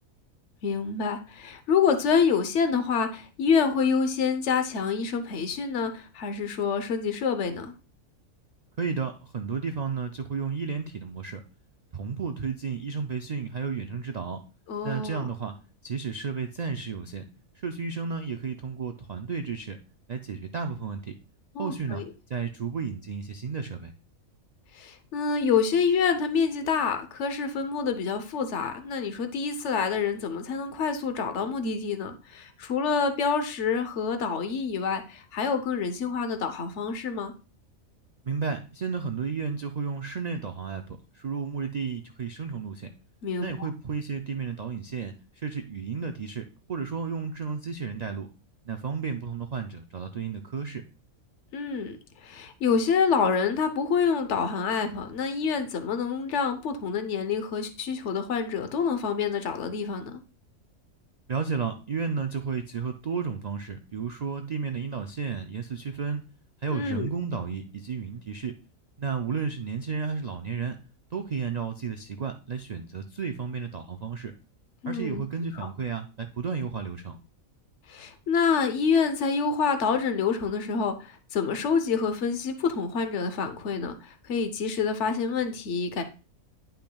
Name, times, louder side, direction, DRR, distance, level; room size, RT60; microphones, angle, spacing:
voice 1, 0.6-7.7 14.7-15.3 21.5-22.0 24.7-37.3 43.2-43.5 51.5-52.0 52.2-60.2 66.7-67.1 74.8-75.2 77.9-86.0, left 5 dB, 60° left, 8 dB, 1.2 m, -27 dB
voice 2, 8.8-11.4 11.9-14.4 14.8-15.5 15.8-17.2 17.6-19.8 20.1-21.2 21.6-22.0 22.3-23.9 38.2-42.9 43.4-48.3 48.6-50.8 61.3-66.3 66.6-68.6 69.0-70.8 71.1-74.3 74.9-77.2, right 5 dB, 80° right, 6 dB, 0.3 m, -32 dB
10.5 x 5.6 x 2.3 m, 0.33 s
omnidirectional pair, 1.5 m